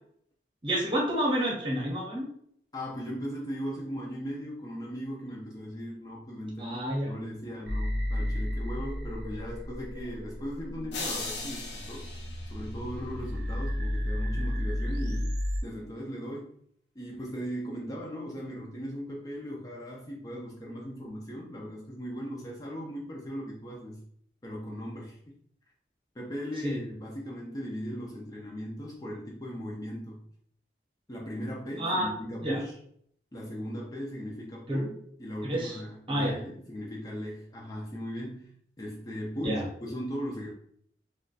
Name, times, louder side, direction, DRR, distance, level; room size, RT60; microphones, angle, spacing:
voice 1, 0.6-2.2 6.6-7.1 26.6-26.8 31.8-32.1 32.4-32.6 34.7-34.8 35.4-35.7 36.1-36.3 39.4-39.6, equal, 30° right, -2 dB, 0.8 m, -29 dB
voice 2, 2.7-12.1 12.5-16.5 17.0-24.0 24.4-25.4 26.1-30.2 31.1-32.8 33.3-40.5, equal, 20° left, -2 dB, 0.4 m, -38 dB
sound 1, 7.7-15.6, left 1 dB, 60° right, 0.6 m, -33 dB
sound 2, 10.9-13.2, left 3 dB, 85° left, 0.8 m, -38 dB
2.4 x 2.2 x 3.8 m, 0.67 s
head